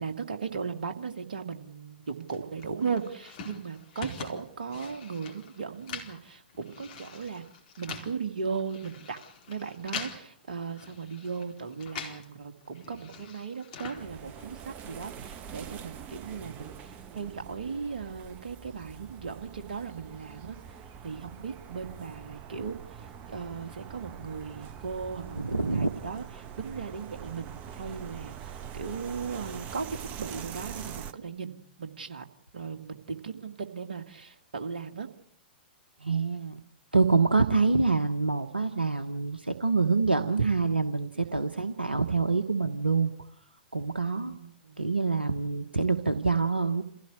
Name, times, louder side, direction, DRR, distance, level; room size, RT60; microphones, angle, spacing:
voice 1, 0.0-7.4 7.8-9.2 9.5-20.6 21.0-26.2 26.6-32.3 32.5-35.1 41.2-41.4 44.1-44.8, right 5 dB, 60° right, 6 dB, 2.1 m, -37 dB
sound 1, 2.3-12.3 12.6-14.6, left 5 dB, 50° left, 4.3 m, -44 dB
sound 2, 13.9-31.1, right 8 dB, 30° right, 1.2 m, -44 dB
voice 2, 25.3-25.9 36.0-36.6 36.9-43.1 43.7-44.3 44.8-46.8, right 4 dB, 85° right, 8 dB, 1.2 m, -26 dB
27.5 x 16.0 x 8.5 m, 0.75 s
figure-of-eight pair, 105°, 5 cm